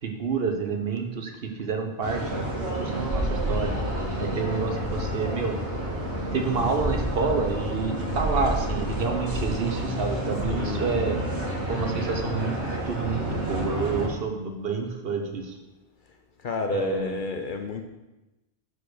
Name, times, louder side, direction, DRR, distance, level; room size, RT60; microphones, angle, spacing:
voice 1, 0.0-3.8 4.2-5.6 6.3-11.2 11.7-12.6 12.9-15.6 16.7-17.2, right 4 dB, 60° right, 4 dB, 1.1 m, -29 dB
sound 1, 2.0-14.1, right 1 dB, 80° right, 1.7 m, -29 dB
voice 2, 10.5-11.0 16.4-17.9, left 3 dB, 55° left, 5 dB, 0.7 m, -30 dB
6.2 x 4.7 x 6.3 m, 1.0 s
omnidirectional pair, 1.2 m